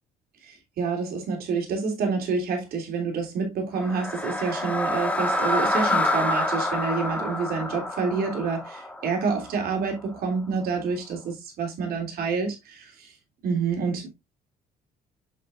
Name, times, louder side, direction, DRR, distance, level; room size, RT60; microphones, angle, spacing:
voice 1, 0.4-13.1 13.4-14.1, right 4 dB, 65° right, 3.4 m, -28 dB
sound 1, 3.8-9.9, left 1 dB, 10° left, 1.5 m, -27 dB
7.5 x 6.8 x 2.5 m
cardioid pair, 110°, 17 cm